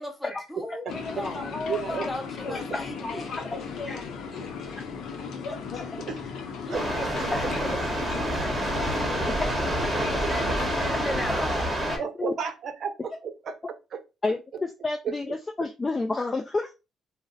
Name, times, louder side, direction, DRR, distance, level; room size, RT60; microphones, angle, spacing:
voice 1, 0.0-1.5 1.9-3.3 6.6-7.8 8.2-9.2 10.2-11.6, left 1 dB, 10° left, 1.0 m, -37 dB
sound 1, 0.9-11.2, left 5 dB, 70° left, 0.7 m, -37 dB
voice 2, 0.9-2.6 3.0-4.0 4.3-4.7 5.4-5.9 7.1-7.5 10.8-11.0 11.9-12.0, left 3 dB, 40° left, 1.3 m, -37 dB
voice 3, 1.7-2.1 6.1-6.2 6.7-7.1 9.6-9.7 10.0-10.3 12.0-13.5 13.9-14.0 15.0-15.1, right 6 dB, 60° right, 0.6 m, -32 dB
sound 2, 6.7-12.0, right 1 dB, 15° right, 1.2 m, -28 dB
voice 4, 14.2-16.7, left 3 dB, 25° left, 0.4 m, -29 dB
2.5 x 2.1 x 3.8 m
supercardioid pair, 70°, 0 cm